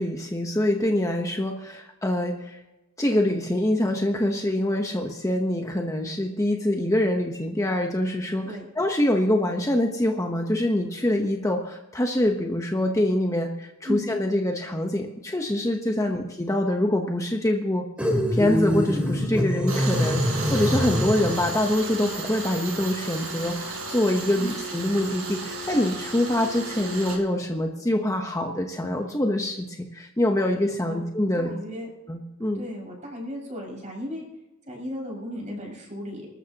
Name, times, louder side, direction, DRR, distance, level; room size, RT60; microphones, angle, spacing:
voice 1, 0.0-2.6 3.0-17.9 18.3-31.5 32.1-32.6, left 1 dB, 15° left, 2 dB, 1.0 m, -25 dB
sound 1, 18.0-21.5, equal, 5° right, 2.5 m, -24 dB
Tools, 19.7-27.2, right 3 dB, 75° right, 5.5 m, -34 dB
voice 2, 31.3-31.9 32.5-34.3 34.7-36.3, equal, 35° right, -1 dB, 6.0 m, -35 dB
24.5 x 13.0 x 2.9 m, 0.98 s
head